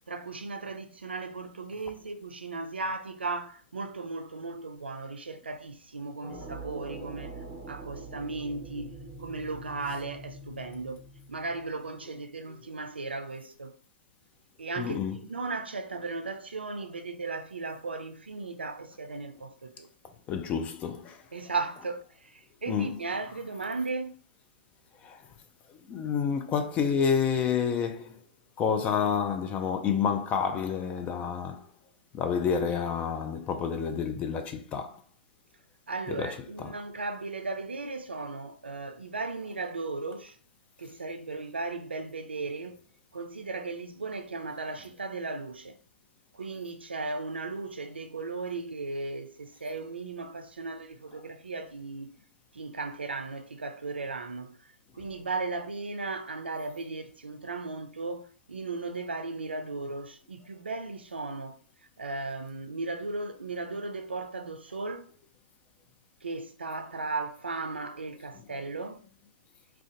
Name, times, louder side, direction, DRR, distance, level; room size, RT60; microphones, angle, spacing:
voice 1, 0.1-7.4 7.7-11.0 11.3-13.7 14.6-19.9 21.3-24.1 35.9-40.4 40.8-42.8 43.1-45.7 46.3-52.2 52.5-61.6 62.0-65.1 66.2-69.0, right 3 dB, 85° right, 0.4 m, -36 dB
sound 1, 6.2-12.1, right 2 dB, 5° right, 0.9 m, -44 dB
voice 2, 14.8-15.2 20.3-21.2 22.7-23.0 25.0-25.2 25.9-28.2 28.6-31.7 32.1-35.0 36.1-36.7, left 7 dB, 25° left, 0.4 m, -29 dB
2.5 x 2.2 x 3.7 m
figure-of-eight pair, 120°, 6 cm